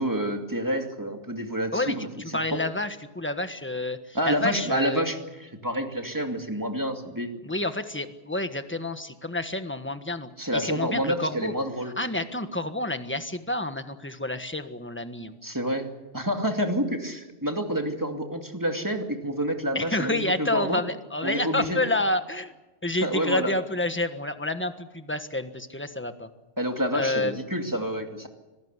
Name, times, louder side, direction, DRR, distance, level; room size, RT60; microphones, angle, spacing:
voice 1, 0.0-2.1 2.5-2.6 4.1-7.3 10.4-11.9 15.4-20.8 21.2-21.8 23.0-23.5 26.6-28.3, equal, 15° right, 4 dB, 2.5 m, -28 dB
voice 2, 1.7-5.0 7.4-11.5 12.0-15.3 19.7-22.5 22.8-26.3 26.9-27.3, left 2 dB, 10° left, 8 dB, 1.4 m, -29 dB
25.5 x 18.5 x 8.3 m, 1.1 s
omnidirectional pair, 1.2 m